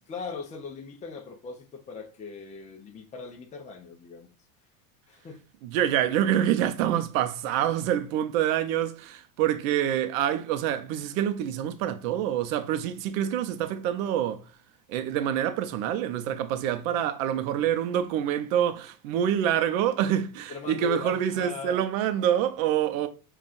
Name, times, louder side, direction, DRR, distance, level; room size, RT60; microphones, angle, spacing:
voice 1, 0.1-4.3 5.1-5.4 20.5-21.9, left 5 dB, 15° left, 0.6 m, -39 dB
voice 2, 5.6-14.4 14.9-23.1, right 10 dB, 65° right, 0.7 m, -26 dB
5.5 x 2.5 x 2.5 m
supercardioid pair, 110°, 43 cm